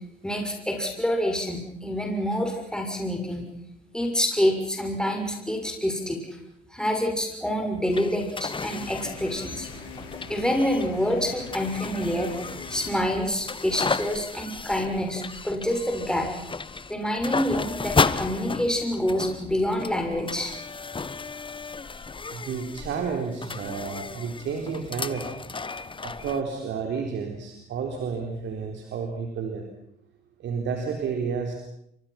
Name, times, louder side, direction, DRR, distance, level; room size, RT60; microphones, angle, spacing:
voice 1, 0.2-3.5 3.9-6.2 6.7-9.7 10.3-12.4 12.7-16.3 16.9-20.5, equal, 5° left, 1 dB, 6.5 m, -27 dB
sound 1, 7.9-26.4, left 4 dB, 25° left, 1.3 m, -33 dB
sound 2, 8.8-13.2, left 4 dB, 80° left, 6.8 m, -42 dB
voice 2, 22.3-25.3 26.0-29.7 30.4-31.5, right 5 dB, 60° right, 3 dB, 4.0 m, -31 dB
30.0 x 23.5 x 6.0 m, 0.75 s
hypercardioid pair, 60°, 21 cm